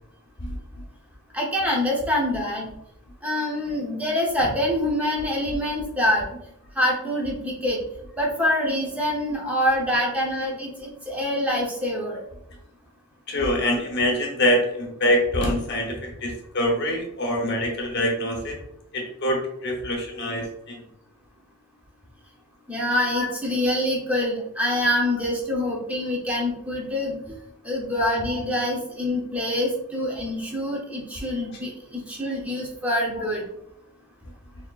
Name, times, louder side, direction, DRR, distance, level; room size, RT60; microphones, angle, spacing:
voice 1, 1.3-2.7 3.2-6.2 6.8-7.8 8.2-12.2 22.7-27.4 27.6-33.4, left 1 dB, 5° right, -3 dB, 0.8 m, -25 dB
voice 2, 13.3-18.6 18.9-20.8 23.1-23.3 28.3-28.4 33.2-33.3, equal, 50° left, 0 dB, 0.9 m, -25 dB
4.2 x 3.5 x 2.4 m, 0.80 s
head